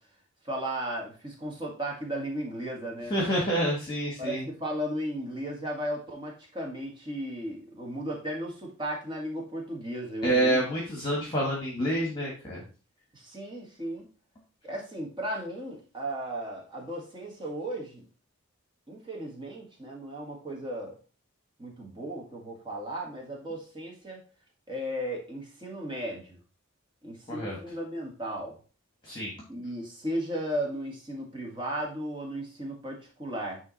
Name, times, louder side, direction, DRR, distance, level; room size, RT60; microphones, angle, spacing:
voice 1, 0.4-3.1 4.2-10.6 13.1-14.1 14.6-18.1 18.9-21.0 21.6-24.2 24.7-26.4 27.0-28.6 29.5-33.6, right 1 dB, 20° right, -2 dB, 1.7 m, -35 dB
voice 2, 3.1-4.4 10.2-12.6 27.3-27.6 29.0-29.3, right 1 dB, 20° left, -2 dB, 1.5 m, -28 dB
9.3 x 3.1 x 4.0 m, 0.36 s
head